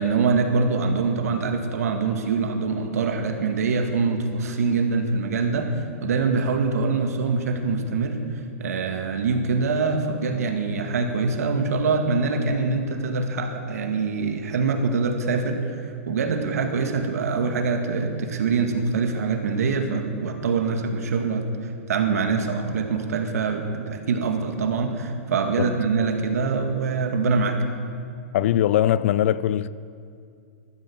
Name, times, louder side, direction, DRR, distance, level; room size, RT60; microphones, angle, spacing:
voice 1, 0.0-5.8 6.0-8.2 8.6-21.5 21.9-27.6, right 4 dB, 85° right, 2.0 m, -24 dB
voice 2, 28.3-29.7, left 11 dB, 60° left, 0.5 m, -21 dB
15.0 x 12.0 x 7.2 m
hypercardioid pair, 155°, 8 cm